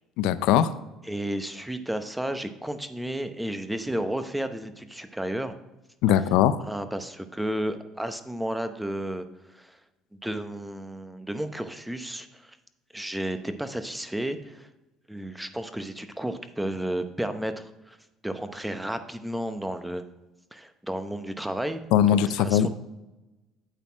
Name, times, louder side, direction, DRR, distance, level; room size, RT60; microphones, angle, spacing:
voice 1, 0.2-0.7 6.0-6.6 21.9-22.7, left 10 dB, 75° left, 13 dB, 0.4 m, -20 dB
voice 2, 1.0-5.5 6.6-9.8 10.1-12.6 12.9-14.7 15.1-18.0 18.2-20.0 20.5-21.8 22.1-22.7, right 1 dB, 5° right, 9 dB, 0.8 m, -32 dB
9.0 x 4.1 x 6.2 m, 1.0 s
supercardioid pair, 80°, 0 cm